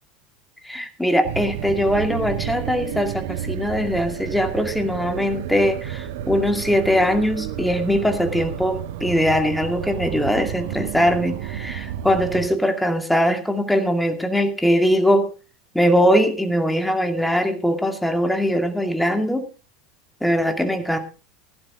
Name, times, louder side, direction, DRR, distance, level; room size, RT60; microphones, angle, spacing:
voice 1, 0.6-15.3 15.7-19.5 20.2-21.0, equal, 5° left, 6 dB, 2.4 m, -21 dB
sound 1, 1.2-12.5, right 11 dB, 65° right, 1.1 m, -31 dB
16.0 x 11.5 x 3.8 m, 0.34 s
hypercardioid pair, 80°, 0 cm